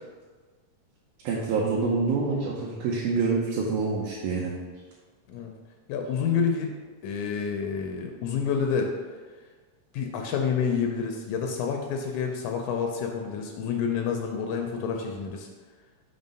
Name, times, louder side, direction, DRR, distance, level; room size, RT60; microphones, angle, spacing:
voice 1, 1.2-4.5, right 4 dB, 80° right, -3 dB, 2.2 m, -26 dB
voice 2, 5.9-6.7 7.0-8.9 9.9-15.5, left 6 dB, 80° left, 3 dB, 1.9 m, -28 dB
5.3 x 3.9 x 5.2 m, 1.4 s
omnidirectional pair, 3.6 m